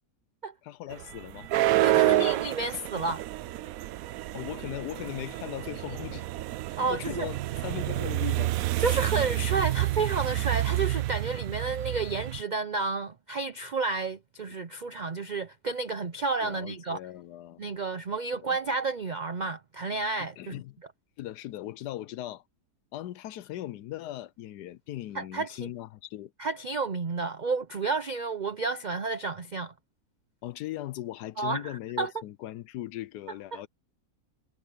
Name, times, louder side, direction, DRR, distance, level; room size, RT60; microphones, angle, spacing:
voice 1, 0.6-1.5 1.9-2.3 4.3-6.2 6.7-8.6 16.4-17.7 18.3-18.6 20.2-20.8 21.2-22.4 22.9-26.3 30.4-33.7, left 14 dB, 85° left, 1.2 m, -39 dB
sound 1, 0.9-12.4, right 16 dB, 70° right, 0.9 m, -29 dB
voice 2, 1.8-3.2 6.8-7.3 8.8-17.0 17.6-20.6 25.1-25.7 26.4-29.7 31.4-32.1 33.5-33.7, right 4 dB, 85° right, 0.4 m, -31 dB
omnidirectional pair, 1.7 m